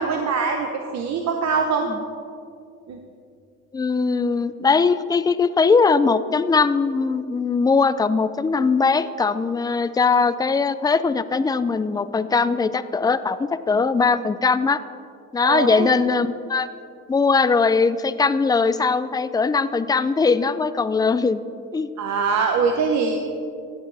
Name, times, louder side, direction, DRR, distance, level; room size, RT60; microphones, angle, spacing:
voice 1, 0.0-1.9 2.9-3.0 15.4-15.9 22.0-23.2, right 5 dB, 65° right, 3 dB, 0.9 m, -23 dB
voice 2, 3.7-14.8 15.3-16.7 17.1-21.4 21.7-21.9, left 4 dB, 15° left, 13 dB, 0.4 m, -20 dB
15.5 x 8.7 x 3.4 m, 2.4 s
cardioid pair, 90°, 30 cm